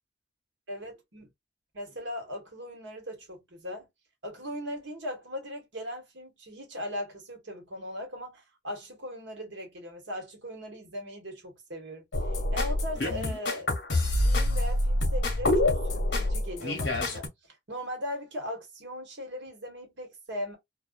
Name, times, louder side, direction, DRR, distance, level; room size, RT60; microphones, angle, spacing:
voice 1, 0.7-1.3 1.7-3.9 4.2-13.7 14.2-20.6, left 1 dB, 85° right, 1.2 m, -39 dB
sound 1, 12.1-17.3, left 1 dB, 65° left, 0.9 m, -26 dB
2.4 x 2.3 x 2.3 m
head